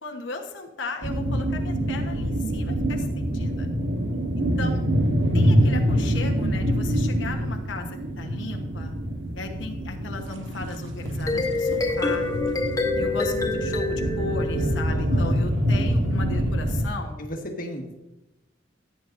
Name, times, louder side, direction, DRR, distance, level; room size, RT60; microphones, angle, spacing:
voice 1, 0.0-3.7 4.4-4.8 5.3-8.9 9.3-12.3 12.9-17.2, left 3 dB, 80° left, 2 dB, 1.2 m, -36 dB
sound 1, 1.0-16.9, equal, 80° right, 1.3 m, -25 dB
sound 2, 11.1-15.4, left 2 dB, 20° left, 1.0 m, -27 dB
voice 2, 14.9-15.4 17.2-17.9, equal, 50° left, 2 dB, 1.5 m, -34 dB
14.5 x 8.8 x 2.6 m, 0.96 s
head